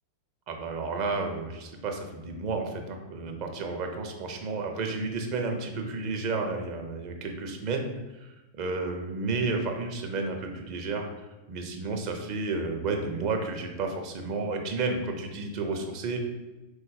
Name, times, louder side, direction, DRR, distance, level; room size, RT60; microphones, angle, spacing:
voice 1, 0.5-16.2, right 3 dB, 45° right, 3 dB, 0.6 m, -32 dB
3.9 x 2.6 x 3.8 m, 1.1 s
figure-of-eight pair, 90°, 0 cm